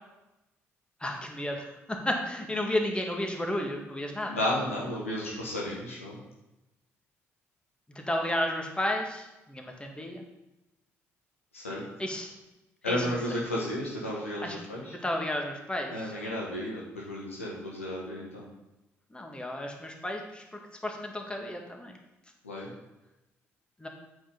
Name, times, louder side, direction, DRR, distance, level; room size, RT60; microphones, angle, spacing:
voice 1, 1.0-4.4 8.0-10.2 12.0-12.3 12.8-13.0 14.4-14.6 15.0-15.9 19.1-21.9 23.8-23.9, left 1 dB, 15° left, 2 dB, 2.0 m, -32 dB
voice 2, 4.3-6.2 11.5-11.8 12.8-14.9 15.9-18.4 22.4-22.7, left 1 dB, 90° left, -4 dB, 1.5 m, -33 dB
8.3 x 5.4 x 5.4 m, 0.96 s
figure-of-eight pair, 45°, 7 cm